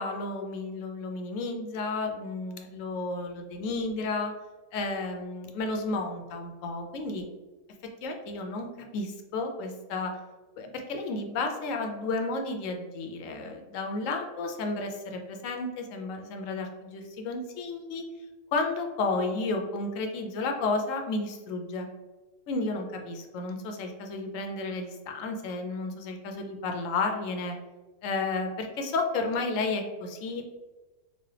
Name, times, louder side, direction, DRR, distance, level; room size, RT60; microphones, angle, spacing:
voice 1, 0.0-4.3 4.7-7.2 8.0-10.1 10.6-18.0 18.5-21.9 22.5-27.6 28.0-30.4, left 3 dB, 70° left, 4 dB, 0.9 m, -32 dB
4.1 x 2.3 x 3.2 m, 1.2 s
omnidirectional pair, 1.6 m